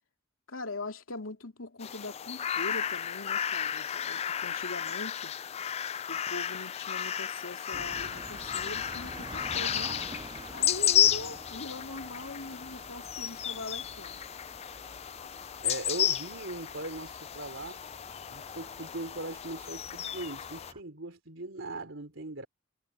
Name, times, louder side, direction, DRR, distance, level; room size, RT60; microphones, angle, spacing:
voice 1, 0.5-5.3 6.1-9.9 10.5-14.2, left 2 dB, 75° left, 2.8 m, -41 dB
sound 1, 1.8-20.7, left 10 dB, 30° left, 0.3 m, -33 dB
sound 2, 7.7-20.8, right 2 dB, 25° right, 7.9 m, -48 dB
voice 2, 15.6-17.8 18.3-22.5, right 2 dB, 65° right, 3.8 m, -40 dB
head